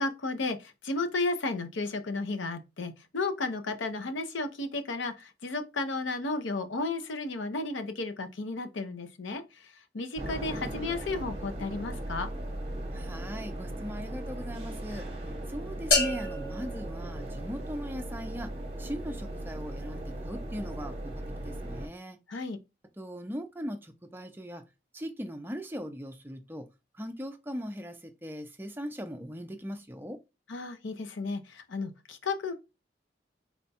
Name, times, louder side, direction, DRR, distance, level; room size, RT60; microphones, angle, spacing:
voice 1, 0.0-12.3 22.3-22.6 30.5-32.5, left 3 dB, 90° left, 0.7 m, -33 dB
sound 1, 10.2-21.9, right 1 dB, 30° right, 0.8 m, -38 dB
voice 2, 12.9-15.0 15.5-18.5 18.8-21.1 21.4-22.2 23.0-24.6 24.9-26.7 27.0-30.2, equal, 10° right, 0.4 m, -39 dB
sound 2, 15.9-17.9, left 2 dB, 60° left, 1.7 m, -30 dB
4.3 x 2.3 x 4.1 m
head